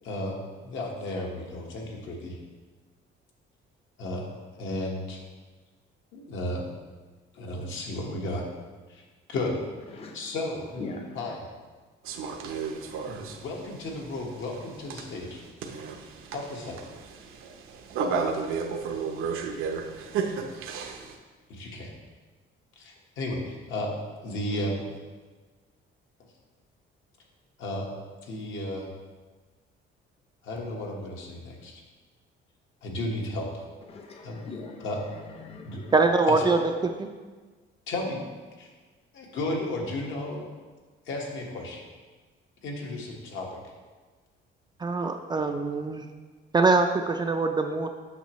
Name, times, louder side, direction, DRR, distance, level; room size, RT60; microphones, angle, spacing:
voice 1, 0.0-2.4 4.0-4.3 4.6-5.2 6.1-6.6 7.3-8.4 8.9-9.0 9.3-9.6 10.1-10.7 11.1-11.5 12.9-15.4 16.3-16.8 21.5-21.9 22.8-23.9 24.2-24.9 27.6-27.9 28.2-28.9 30.4-31.8 32.8-33.6 34.2-34.4 34.8-35.0 35.6-35.9 36.3-36.5 37.9-38.2 38.6-38.7 39.1-40.5 41.0-41.8 42.6-43.5, left 1 dB, 70° left, -1 dB, 1.4 m, -33 dB
voice 2, 10.8-11.2 33.9-34.9 35.4-35.9, left 3 dB, 30° left, 3 dB, 0.7 m, -40 dB
sound 1, 12.1-21.2, right 5 dB, 85° right, 0.8 m, -33 dB
voice 3, 35.9-36.6 37.0-37.1 44.8-46.1 46.5-47.9, right 3 dB, 20° right, 5 dB, 0.3 m, -23 dB
8.1 x 6.1 x 3.0 m, 1.4 s
cardioid pair, 145°, 21 cm